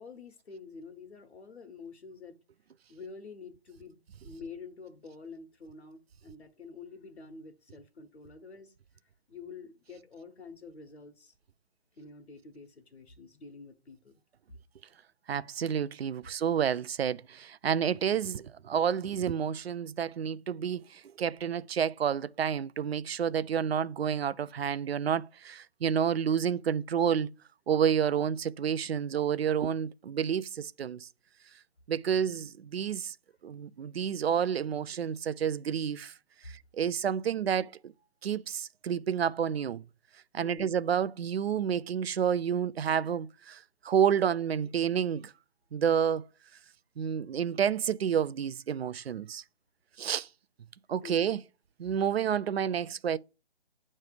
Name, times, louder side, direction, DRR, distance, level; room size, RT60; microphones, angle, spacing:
voice 1, 0.0-2.4 2.9-8.7 9.3-11.3 12.0-14.2 32.0-32.2 40.4-40.7 51.0-51.4, left 4 dB, 85° left, 1.3 m, -48 dB
voice 2, 15.3-27.3 27.7-31.1 31.9-33.2 33.4-36.1 36.4-37.9 38.2-39.8 40.3-45.3 45.7-46.2 47.0-49.4 50.0-50.3 50.9-51.4 51.8-53.2, right 8 dB, 70° right, 0.5 m, -29 dB
9.4 x 3.2 x 5.0 m
figure-of-eight pair, 150°, 32 cm